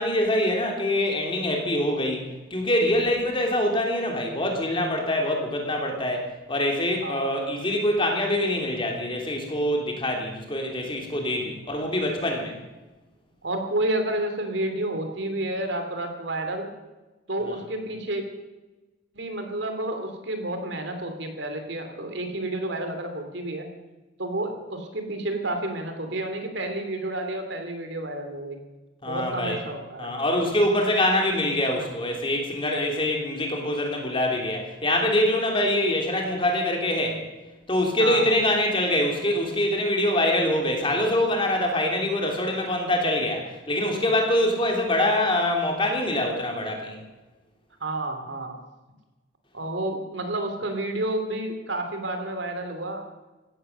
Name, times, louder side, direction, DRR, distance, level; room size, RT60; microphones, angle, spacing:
voice 1, 0.0-2.2 2.5-12.5 29.0-29.6 30.0-37.2 37.7-47.0, left 1 dB, 25° left, 2 dB, 3.2 m, -24 dB
voice 2, 7.0-7.4 11.4-11.7 13.4-16.7 17.3-18.2 19.1-23.7 24.2-28.6 29.1-30.1 31.7-31.9 38.0-38.3 47.8-48.5 49.5-53.0, right 1 dB, 65° right, 6 dB, 2.7 m, -30 dB
16.0 x 13.5 x 6.7 m, 1.1 s
head